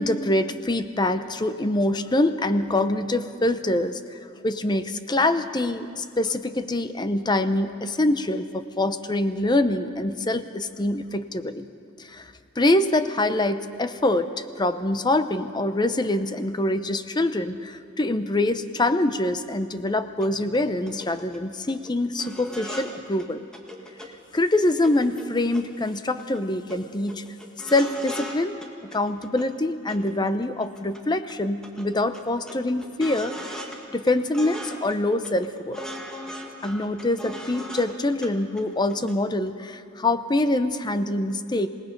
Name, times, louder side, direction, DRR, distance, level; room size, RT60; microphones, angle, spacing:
voice 1, 0.0-4.2 4.4-11.7 12.0-12.3 12.6-23.4 24.3-27.2 27.6-28.6 28.9-33.4 33.9-35.8 36.6-41.7, left 2 dB, 25° left, 11 dB, 0.7 m, -25 dB
sound 1, 20.2-20.3 20.5-20.6 20.9-21.4 21.7-21.9 22.2-22.9 23.2-23.3 23.5-24.1 24.3-25.9 26.2-26.4 26.7-26.8 27.1-28.4 28.6-29.5 29.9-31.0 31.3-31.4 31.6-33.8 34.1-34.9 35.2-37.9 38.2-38.3 38.6-39.2 39.4-39.5, equal, 5° left, 1.7 m, -38 dB
27.0 x 18.5 x 5.3 m, 2.5 s
head